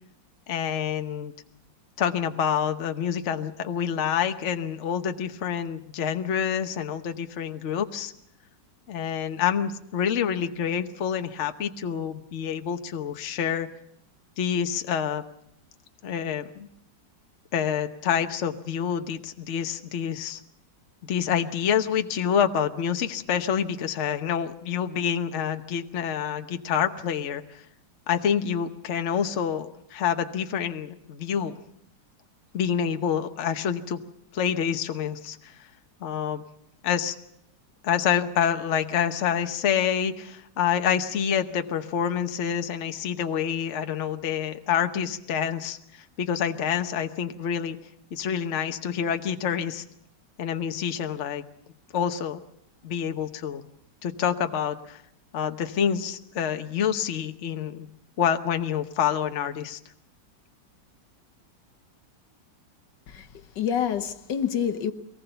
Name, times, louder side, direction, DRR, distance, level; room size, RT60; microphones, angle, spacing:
voice 1, 0.5-1.3 2.0-8.1 8.9-13.7 14.4-15.2 16.0-16.7 17.5-20.4 21.1-27.4 28.1-31.5 32.5-34.0 34.3-35.5 36.0-36.4 36.8-37.2 37.8-47.8 48.1-49.8 50.4-51.4 51.9-52.4 52.8-53.6 54.0-55.0 55.3-57.9 58.2-59.8, left 8 dB, 45° left, 1.2 m, -27 dB
voice 2, 63.1-64.9, left 8 dB, 75° left, 1.7 m, -28 dB
23.0 x 19.0 x 6.9 m
omnidirectional pair, 1.9 m